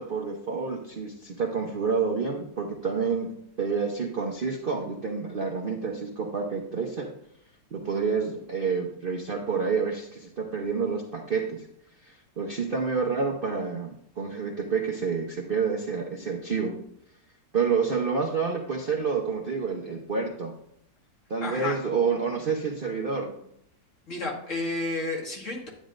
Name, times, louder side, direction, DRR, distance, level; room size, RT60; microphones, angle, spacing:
voice 1, 0.0-3.3 3.6-7.1 7.7-11.7 12.0-16.8 17.5-20.5 21.3-23.3, right 5 dB, 45° right, 0 dB, 0.7 m, -28 dB
voice 2, 21.4-21.8 24.1-25.7, left 2 dB, 45° left, -2 dB, 2.1 m, -31 dB
10.0 x 9.2 x 2.5 m, 0.71 s
omnidirectional pair, 1.9 m